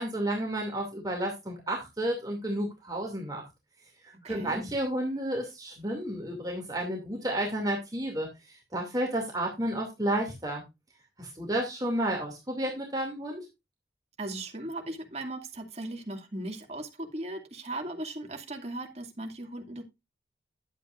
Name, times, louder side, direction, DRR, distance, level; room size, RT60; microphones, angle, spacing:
voice 1, 0.0-3.4 4.2-10.6 11.2-13.5, right 1 dB, 20° right, 2.5 m, -31 dB
voice 2, 4.2-4.7 14.2-19.8, right 1 dB, 35° right, 2.4 m, -38 dB
11.0 x 8.8 x 2.5 m
head